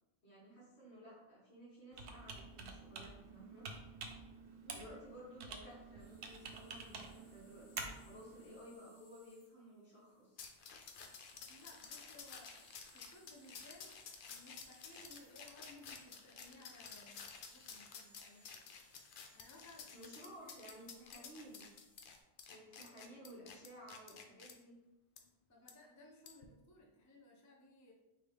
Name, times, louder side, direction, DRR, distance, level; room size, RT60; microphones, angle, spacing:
voice 1, 0.2-3.7 4.7-10.4 19.9-21.7 22.5-24.7, equal, 80° left, -6 dB, 1.9 m, -55 dB
Computer keyboard, 1.9-8.6, right 4 dB, 80° right, 0.9 m, -49 dB
voice 2, 4.6-5.0 11.5-13.9 14.3-18.7 19.3-19.9 20.4-20.6 20.9-21.3 22.8-23.1 25.5-27.9, left 1 dB, 20° left, -1 dB, 0.5 m, -60 dB
sound 1, 6.0-22.2, left 1 dB, 45° left, 1.3 m, -69 dB
sound 2, 10.4-24.5 25.2-25.3 25.7-25.8 26.3-26.4, left 6 dB, 60° left, 0.6 m, -53 dB
4.8 x 2.6 x 3.3 m, 1.0 s
omnidirectional pair, 1.1 m